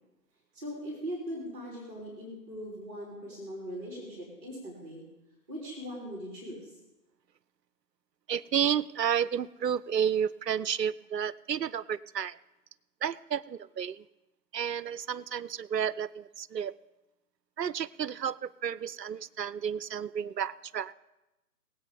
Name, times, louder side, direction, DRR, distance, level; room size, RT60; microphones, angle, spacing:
voice 1, 0.5-5.0 5.5-6.7, equal, 15° right, -3 dB, 4.0 m, -40 dB
voice 2, 8.3-12.4 13.0-14.0 14.5-16.7 17.6-20.9, right 8 dB, 75° right, 20 dB, 0.6 m, -31 dB
21.5 x 8.4 x 5.2 m, 1.0 s
figure-of-eight pair, 145°, 50 cm